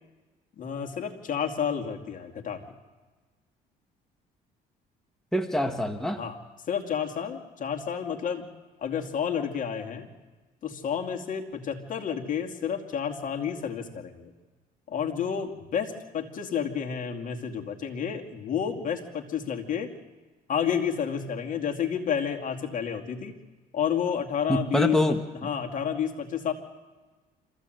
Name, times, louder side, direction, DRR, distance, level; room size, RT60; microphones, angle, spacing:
voice 1, 0.6-2.6 6.2-6.4 6.7-8.5 8.8-10.1 10.6-14.3 14.9-19.9 20.5-23.3 23.7-25.0 25.4-26.5, left 8 dB, 50° left, 3 dB, 2.4 m, -30 dB
voice 2, 5.3-6.2 24.5-25.2, left 1 dB, 5° left, 4 dB, 1.3 m, -25 dB
26.0 x 15.0 x 7.8 m, 1.3 s
cardioid pair, 110°, 17 cm